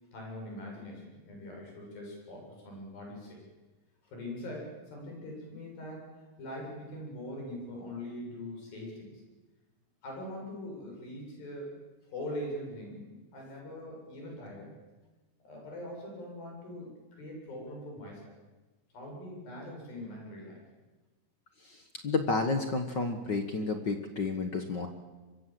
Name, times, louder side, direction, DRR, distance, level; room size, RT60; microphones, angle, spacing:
voice 1, 0.1-3.4 4.1-6.1 6.4-9.2 10.0-11.7 12.1-14.7 15.4-18.4 18.9-20.6, left 1 dB, 85° left, -1 dB, 9.4 m, -42 dB
voice 2, 21.6-24.9, left 3 dB, 50° left, 6 dB, 1.3 m, -31 dB
24.0 x 23.5 x 7.7 m, 1.2 s
omnidirectional pair, 4.0 m